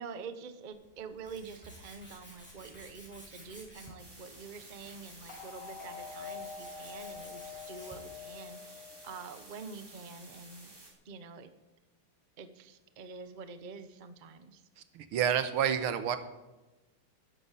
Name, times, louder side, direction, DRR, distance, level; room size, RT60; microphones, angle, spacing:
voice 1, 0.0-10.7 11.0-11.5 12.4-14.6, right 5 dB, 40° right, 10 dB, 0.6 m, -46 dB
Tools, 0.7-8.2, equal, 5° left, 5.6 m, -54 dB
sound 1, 4.0-10.9, right 1 dB, 10° right, 3.1 m, -53 dB
sound 2, 5.3-9.5, left 6 dB, 40° left, 2.9 m, -46 dB
voice 2, 14.9-16.2, right 8 dB, 80° right, 11 dB, 1.9 m, -29 dB
13.0 x 9.8 x 8.2 m, 1.1 s
omnidirectional pair, 2.3 m